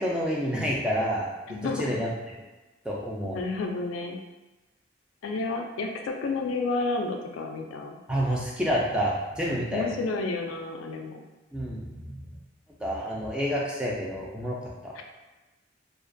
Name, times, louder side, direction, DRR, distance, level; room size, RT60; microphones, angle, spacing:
voice 1, 0.0-2.1 2.8-3.4 8.1-10.0 11.5-12.3 12.8-14.6 14.8-15.0, equal, 5° right, -4 dB, 0.3 m, -29 dB
voice 2, 1.5-1.9 3.3-4.2 5.2-8.0 9.7-11.2 15.0-15.1, left 3 dB, 85° left, 3 dB, 0.3 m, -31 dB
2.3 x 2.1 x 2.5 m, 1.1 s
head